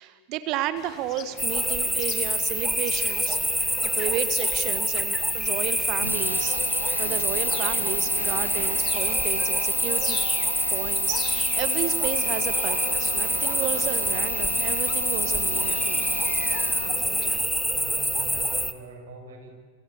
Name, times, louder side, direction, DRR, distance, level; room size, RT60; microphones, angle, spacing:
voice 1, 0.0-6.6 7.0-10.2 10.7-16.0, right 11 dB, 40° right, 12 dB, 1.4 m, -32 dB
sound 1, 0.8-17.4, left 7 dB, 30° left, 2.8 m, -42 dB
sound 2, 1.4-18.7, equal, ahead, 1.4 m, -26 dB
Drill, 6.0-17.0, right 1 dB, 85° right, 1.1 m, -34 dB
voice 2, 17.7-19.5, right 3 dB, 60° right, 4 dB, 6.5 m, -44 dB
28.5 x 24.5 x 8.3 m, 1.5 s
figure-of-eight pair, 90°, 0 cm